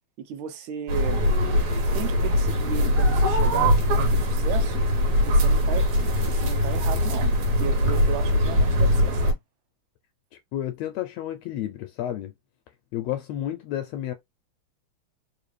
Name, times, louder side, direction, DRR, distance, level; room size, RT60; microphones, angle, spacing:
voice 1, 0.2-1.2 1.9-4.8 5.2-9.4, right 8 dB, 80° right, 2.1 m, -35 dB
sound 1, 0.9-9.3, left 1 dB, 65° right, 2.3 m, -21 dB
voice 2, 10.5-12.3 12.9-14.1, left 12 dB, 80° left, 1.5 m, -31 dB
4.8 x 2.5 x 3.2 m
omnidirectional pair, 3.4 m